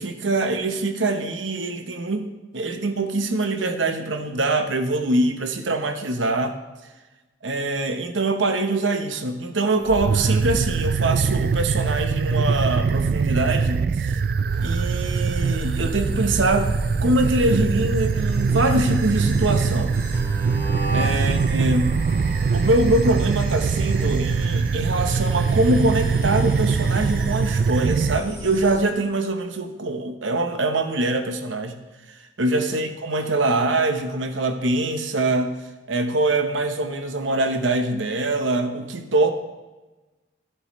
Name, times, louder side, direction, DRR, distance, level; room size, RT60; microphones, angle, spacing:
voice 1, 0.0-6.5 7.4-14.2 14.6-16.7 17.0-19.9 20.9-22.0 22.5-31.8 32.4-35.5 35.9-39.3, right 2 dB, 90° right, 7 dB, 1.0 m, -23 dB
sound 1, 9.8-28.2, right 5 dB, 50° right, 0.3 m, -23 dB
sound 2, 14.5-28.8, equal, 35° right, 2.7 m, -34 dB
13.0 x 10.5 x 3.2 m, 1.2 s
head